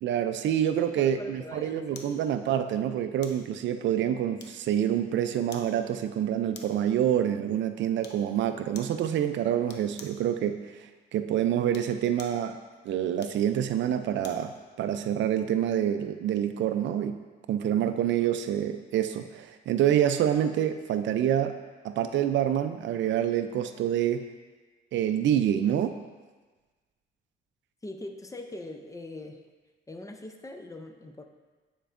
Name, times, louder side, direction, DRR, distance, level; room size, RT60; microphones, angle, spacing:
voice 1, 0.0-10.6 11.1-12.6 12.8-14.5 14.8-17.2 17.5-21.6 21.8-24.3 24.9-26.0, right 10 dB, 70° right, 9 dB, 0.4 m, -27 dB
voice 2, 0.7-2.2 27.8-29.4 29.9-31.3, left 2 dB, 15° left, 5 dB, 0.5 m, -42 dB
sound 1, 1.9-2.2 3.2-3.5 4.4-4.8 5.5-5.7 6.5-6.9 8.0-8.3 8.7-9.0 9.7-10.2 11.6-12.4 13.2-14.5 14.9-15.1, left 4 dB, 60° left, 0.7 m, -48 dB
9.0 x 4.5 x 2.5 m, 1.3 s
cardioid pair, 90°, 20 cm